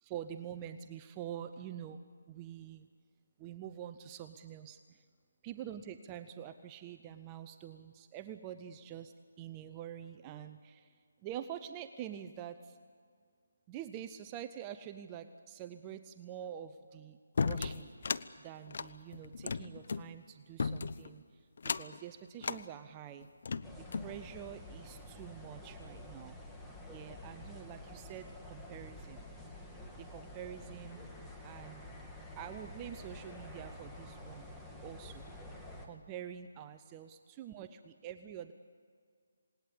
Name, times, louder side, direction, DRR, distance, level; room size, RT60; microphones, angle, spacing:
voice 1, 0.0-2.9 3.4-5.0 5.4-12.8 13.7-17.9 18.4-23.3 23.8-26.4 26.9-29.3 30.0-31.2 31.4-31.9 32.4-34.5 34.8-35.3 35.8-38.5, right 10 dB, 20° right, 8 dB, 0.7 m, -46 dB
sound 1, 17.4-18.3 18.7-20.1 20.6-21.1 21.6-22.0 22.4-22.6 23.2-24.1, left 5 dB, 55° left, 0.8 m, -35 dB
sound 2, 23.6-35.9, left 1 dB, ahead, 2.0 m, -49 dB
28.0 x 19.0 x 8.5 m, 2.1 s
figure-of-eight pair, 160°, 0 cm